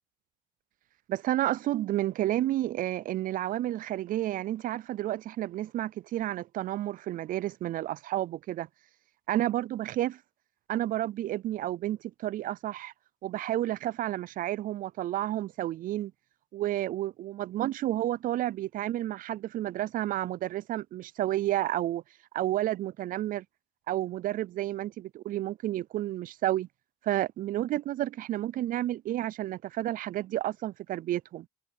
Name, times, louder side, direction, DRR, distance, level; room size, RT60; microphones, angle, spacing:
voice 1, 1.1-8.7 9.3-10.2 10.7-12.9 13.2-16.1 16.5-22.0 22.3-23.4 23.9-26.7 27.0-31.5, right 14 dB, 55° right, 0.4 m, -31 dB
cardioid pair, 110°, 17 cm